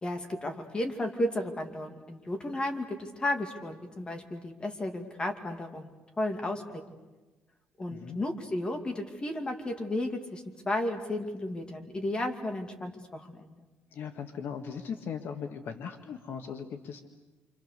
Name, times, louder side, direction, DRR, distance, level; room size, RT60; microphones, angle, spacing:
voice 1, 0.0-7.0 7.8-13.5, left 1 dB, 20° left, 5 dB, 2.5 m, -33 dB
voice 2, 13.9-17.0, left 7 dB, 60° left, 6 dB, 1.8 m, -38 dB
28.5 x 26.5 x 6.8 m, 1.2 s
cardioid pair, 135°, 4 cm